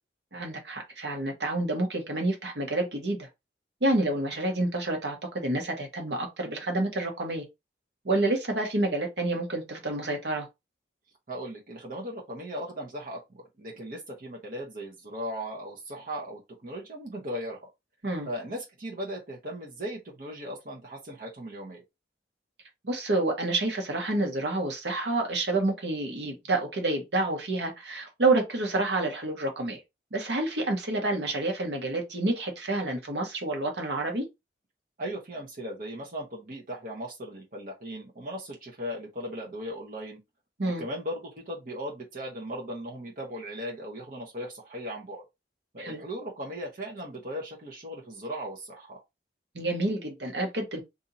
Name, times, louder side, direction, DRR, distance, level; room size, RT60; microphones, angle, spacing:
voice 1, 0.3-3.3 3.8-7.4 8.0-10.5 18.0-18.3 22.8-29.8 30.1-34.3 40.6-40.8 45.8-46.0 49.5-50.8, right 2 dB, 75° right, 1.1 m, -28 dB
voice 2, 11.3-17.7 18.2-21.8 35.0-40.2 40.6-45.3 45.7-49.0, equal, 50° right, 0.9 m, -37 dB
2.8 x 2.7 x 3.8 m
head